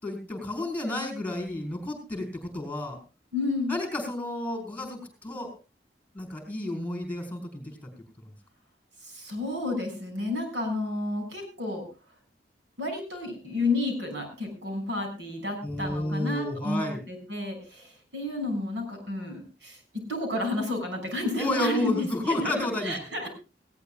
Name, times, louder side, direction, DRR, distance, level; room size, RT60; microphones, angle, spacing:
voice 1, 0.0-3.0 3.7-5.5 6.1-7.8 15.6-17.0 21.4-22.9, left 1 dB, 10° left, 4 dB, 5.1 m, -31 dB
voice 2, 3.3-3.7 9.0-11.8 12.8-23.3, left 2 dB, 80° right, 3 dB, 7.0 m, -31 dB
20.0 x 17.5 x 2.5 m, 0.31 s
head